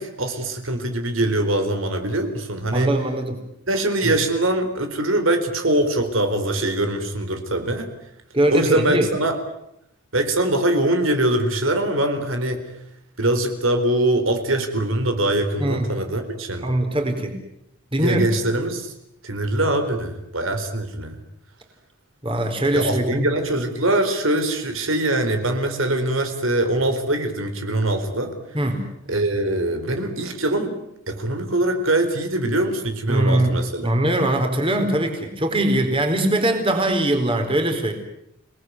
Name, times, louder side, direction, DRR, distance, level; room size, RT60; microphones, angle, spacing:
voice 1, 0.0-2.9 3.7-7.9 8.5-9.4 10.1-12.7 13.2-16.7 18.0-18.9 19.2-21.2 22.7-28.3 29.1-30.8 31.1-33.9, right 1 dB, 75° right, 6 dB, 4.2 m, -23 dB
voice 2, 2.7-3.4 4.0-4.1 8.3-9.1 15.6-15.9 16.6-17.3 17.9-18.3 22.2-23.3 28.5-28.8 33.1-33.6 33.8-37.9, right 1 dB, 25° right, 5 dB, 4.4 m, -21 dB
30.0 x 20.0 x 9.6 m, 0.79 s
head